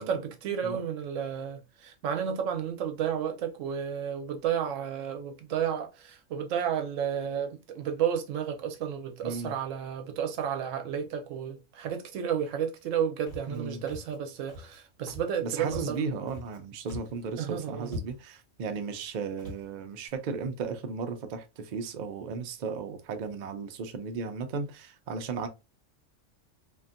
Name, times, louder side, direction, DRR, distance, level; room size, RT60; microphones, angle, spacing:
voice 1, 0.0-16.0 17.4-17.9, right 8 dB, 85° right, 1.0 m, -32 dB
voice 2, 9.2-9.5 13.5-13.8 15.4-25.5, right 5 dB, 65° right, 0.4 m, -35 dB
Walk footsteps, 13.3-13.6 13.9-14.2 14.5-14.8 15.1-15.4 15.7-16.6 16.8-17.2 17.5-17.6 17.8-18.4 18.9-19.1 19.4-19.6, left 1 dB, 35° left, 1.4 m, -42 dB
2.8 x 2.6 x 2.4 m
omnidirectional pair, 1.3 m